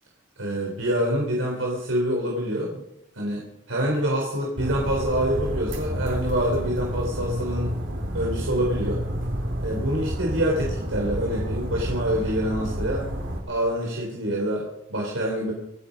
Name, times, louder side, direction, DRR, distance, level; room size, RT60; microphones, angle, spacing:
voice 1, 0.4-2.8 3.1-7.7 8.1-9.0 9.6-13.1 13.5-15.5, equal, 90° right, -1 dB, 3.9 m, -26 dB
sound 1, 4.6-13.4, equal, 65° right, 4.1 m, -30 dB
26.0 x 9.4 x 5.3 m, 0.83 s
head